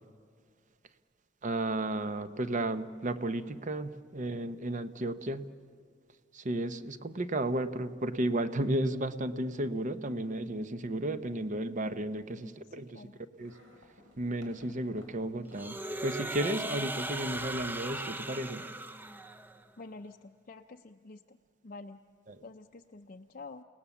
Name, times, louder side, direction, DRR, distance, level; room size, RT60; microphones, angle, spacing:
voice 1, 1.4-5.5 6.3-13.0 13.4-13.5 14.2-18.6 22.3-22.4, right 1 dB, 40° right, 11 dB, 0.8 m, -33 dB
voice 2, 12.1-13.1 19.8-21.4 21.6-22.0 22.4-23.6, left 3 dB, 45° left, 4 dB, 0.6 m, -48 dB
sound 1, 13.4-16.2 16.5-17.8, equal, 80° right, 5.7 m, -58 dB
sound 2, 15.5-19.6, right 2 dB, 10° right, 0.6 m, -38 dB
29.5 x 18.5 x 7.0 m, 2.1 s
head